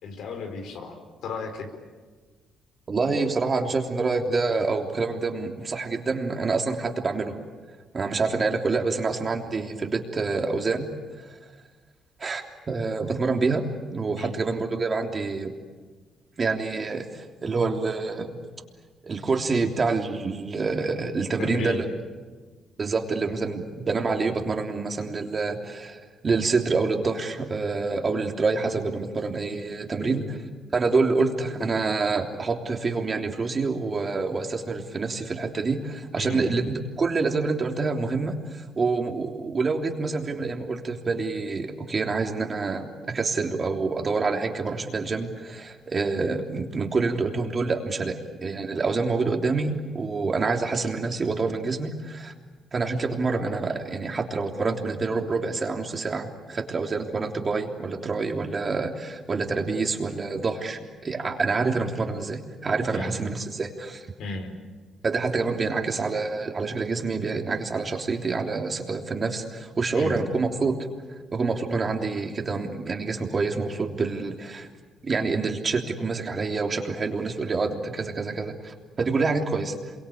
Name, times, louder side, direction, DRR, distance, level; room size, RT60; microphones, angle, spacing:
voice 1, 0.0-1.7 14.2-14.3 21.4-21.9 30.0-30.3 36.2-36.6 62.9-63.3 64.2-64.5 70.0-70.2, left 4 dB, 80° left, 5 dB, 4.7 m, -34 dB
voice 2, 2.9-7.4 7.9-10.9 11.2-11.4 12.2-15.5 16.4-18.4 19.0-21.8 22.8-30.4 30.7-52.3 52.7-64.1 65.0-70.8 71.3-74.7 75.0-79.9, right 4 dB, 35° right, 3 dB, 3.3 m, -27 dB
27.0 x 24.0 x 8.7 m, 1.4 s
cardioid pair, 90°, 0 cm